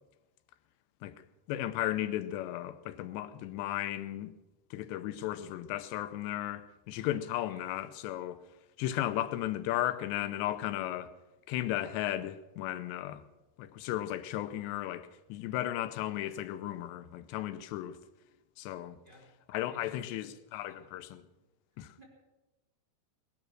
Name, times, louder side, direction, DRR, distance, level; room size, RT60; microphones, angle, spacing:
voice 1, 1.0-4.3 4.7-8.4 8.8-11.1 11.5-13.2 13.6-18.0 18.6-19.0 19.5-21.2 21.8-21.9, left 13 dB, 85° left, 2.9 m, -35 dB
voice 2, 19.7-20.8 21.7-22.0, equal, 10° right, 3.2 m, -57 dB
19.5 x 11.0 x 6.3 m
omnidirectional pair, 5.0 m